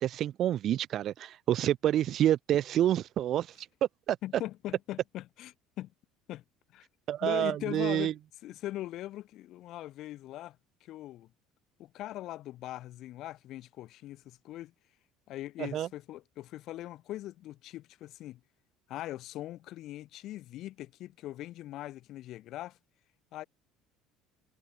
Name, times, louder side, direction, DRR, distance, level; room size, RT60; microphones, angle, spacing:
voice 1, 0.0-3.5 4.1-4.2 7.1-8.1 15.6-15.9, right 11 dB, 50° right, 0.3 m, -28 dB
voice 2, 4.2-5.9 6.3-6.4 6.7-6.9 7.2-8.2 8.4-10.6 10.8-11.3 11.8-14.7 15.3-18.4 18.9-22.8 23.3-23.4, left 14 dB, 55° left, 1.2 m, -41 dB
figure-of-eight pair, 60°, 0 cm